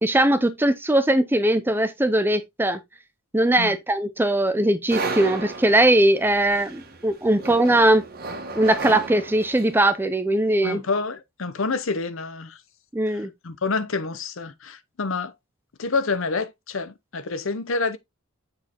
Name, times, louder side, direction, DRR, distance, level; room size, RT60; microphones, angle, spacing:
voice 1, 0.0-2.8 3.3-8.1 8.6-10.8 12.9-13.3, right 1 dB, 10° right, 0.5 m, -20 dB
sound 1, 4.9-9.8, right 3 dB, 45° right, 1.3 m, -34 dB
voice 2, 10.6-12.6 13.1-15.3 15.8-18.0, left 4 dB, 60° left, 0.8 m, -28 dB
7.5 x 4.5 x 3.0 m
head